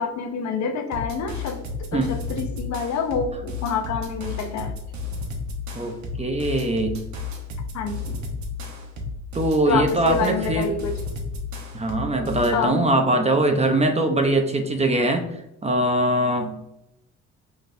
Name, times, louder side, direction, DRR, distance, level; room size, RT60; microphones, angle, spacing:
voice 1, 0.0-4.8 7.7-8.2 9.7-11.0 12.5-12.8, left 5 dB, 65° left, 5 dB, 0.8 m, -27 dB
sound 1, 0.9-12.6, left 4 dB, 65° right, 1.1 m, -33 dB
voice 2, 6.2-6.9 9.3-10.7 11.7-15.3 15.6-16.6, right 1 dB, 20° right, 5 dB, 0.7 m, -21 dB
6.1 x 3.2 x 2.6 m, 0.90 s
cardioid pair, 90°, 30 cm